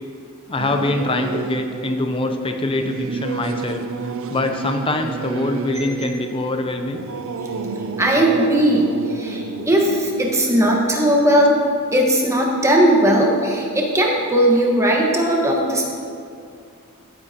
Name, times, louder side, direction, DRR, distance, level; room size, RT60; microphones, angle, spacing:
voice 1, 0.5-3.8 4.3-7.0, left 2 dB, 25° left, 6 dB, 0.5 m, -24 dB
Singing / Musical instrument, 0.6-12.4, right 4 dB, 65° right, 0.5 m, -31 dB
voice 2, 8.0-11.6 11.9-15.8, right 1 dB, 15° right, -1 dB, 1.4 m, -18 dB
15.0 x 8.9 x 2.9 m, 2.3 s
head